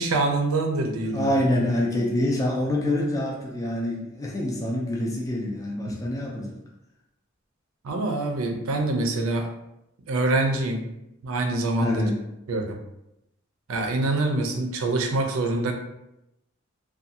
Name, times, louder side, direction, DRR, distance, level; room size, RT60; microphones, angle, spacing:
voice 1, 0.0-1.3 5.9-6.0 7.8-9.5 10.1-10.8 11.2-12.0 12.5-12.8 13.7-15.7, right 2 dB, 85° right, 3 dB, 0.5 m, -25 dB
voice 2, 1.1-6.6 11.8-12.2, left 1 dB, 15° left, -2 dB, 0.3 m, -26 dB
2.5 x 2.3 x 2.7 m, 0.86 s
head